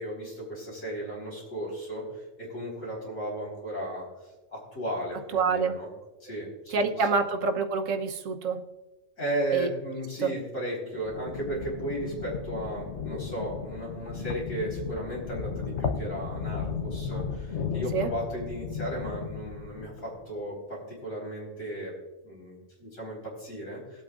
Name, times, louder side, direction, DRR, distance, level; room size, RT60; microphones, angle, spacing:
voice 1, 0.0-4.1 4.5-5.9 6.2-7.1 9.2-21.9 22.2-24.0, right 1 dB, 85° left, -4 dB, 4.6 m, -35 dB
voice 2, 5.3-5.8 6.7-8.6 9.5-9.7 10.2-10.3 17.9-18.1, right 4 dB, 85° right, 6 dB, 1.3 m, -26 dB
sound 1, 10.9-20.2, left 6 dB, 65° left, 1.1 m, -35 dB
20.5 x 8.3 x 2.5 m, 1.1 s
omnidirectional pair, 1.3 m